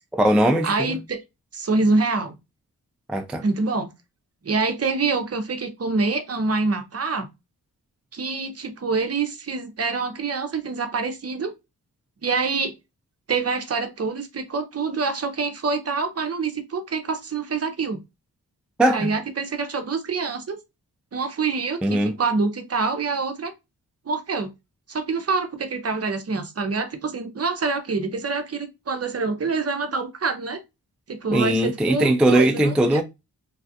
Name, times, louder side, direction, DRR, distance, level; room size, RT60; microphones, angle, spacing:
voice 1, 0.1-1.0 3.1-3.4 18.8-19.1 21.8-22.2 31.3-33.0, right 1 dB, 5° right, 0.3 m, -20 dB
voice 2, 0.6-1.2 1.5-2.4 3.4-3.9 4.4-7.3 8.1-11.5 12.2-12.7 13.3-18.0 18.9-20.6 21.1-23.5 24.1-24.5 24.9-30.6 31.1-33.0, right 4 dB, 40° right, 0.7 m, -26 dB
3.3 x 2.3 x 2.7 m
wide cardioid pair, 95°, 37 cm